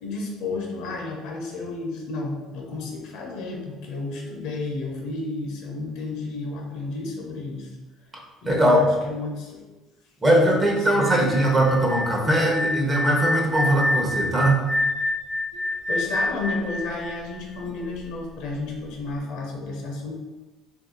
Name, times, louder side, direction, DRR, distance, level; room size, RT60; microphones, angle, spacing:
voice 1, 0.0-7.7 8.4-9.6 10.2-11.5 15.9-20.1, left 3 dB, 75° left, 0 dB, 0.7 m, -32 dB
voice 2, 8.4-8.8 10.2-14.7, right 1 dB, 20° right, -1 dB, 0.8 m, -20 dB
sound 1, 10.9-17.9, left 2 dB, 70° right, 0.8 m, -28 dB
2.6 x 2.3 x 3.8 m, 1.2 s
cardioid pair, 110°, 0 cm